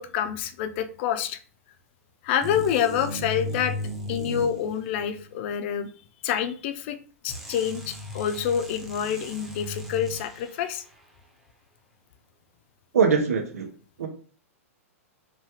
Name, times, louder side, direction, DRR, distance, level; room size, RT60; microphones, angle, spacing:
voice 1, 0.0-1.4 2.2-3.8 4.1-5.9 6.2-7.0 7.2-10.8, left 9 dB, 50° left, 9 dB, 0.4 m, -27 dB
sound 1, 2.4-5.3 7.3-10.7, left 1 dB, ahead, 0.7 m, -36 dB
voice 2, 12.9-13.7 14.0-14.1, right 5 dB, 85° right, 3 dB, 0.6 m, -22 dB
3.1 x 2.2 x 2.8 m, 0.42 s
hypercardioid pair, 120°, 8 cm